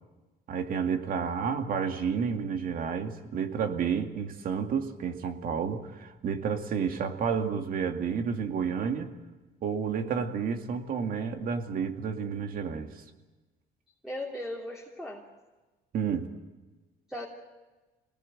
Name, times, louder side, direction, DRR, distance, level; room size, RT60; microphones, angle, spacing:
voice 1, 0.5-9.1 9.6-12.9 15.9-16.3, right 6 dB, 60° right, 6 dB, 2.3 m, -30 dB
voice 2, 14.0-15.3 17.1-17.3, left 1 dB, ahead, -2 dB, 3.0 m, -37 dB
25.5 x 19.0 x 7.9 m, 1.2 s
cardioid pair, 110°, 17 cm